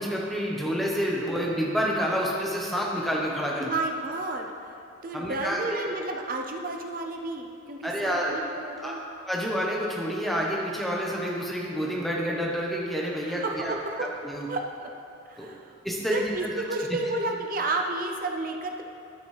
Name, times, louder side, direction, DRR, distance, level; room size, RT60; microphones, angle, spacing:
voice 1, 0.0-3.7 5.1-5.8 7.8-8.3 8.8-8.9 9.3-14.5 15.4-15.5 15.8-16.5, equal, ahead, -3 dB, 1.0 m, -28 dB
voice 2, 3.6-4.7 5.0-9.0 13.3-14.1 14.5-14.9 15.3-15.8 16.1-18.8, right 2 dB, 45° right, 3 dB, 0.6 m, -31 dB
13.0 x 6.2 x 3.3 m, 2.6 s
head